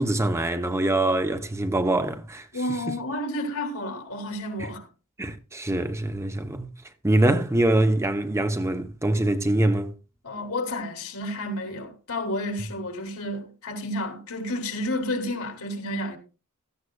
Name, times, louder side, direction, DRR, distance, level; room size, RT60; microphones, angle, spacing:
voice 1, 0.0-2.9 4.6-4.7 5.2-6.7 7.0-9.9, right 1 dB, 15° right, 0.7 m, -24 dB
voice 2, 2.5-4.9 10.2-16.2, left 1 dB, 75° left, 3.0 m, -31 dB
16.0 x 14.0 x 2.3 m
head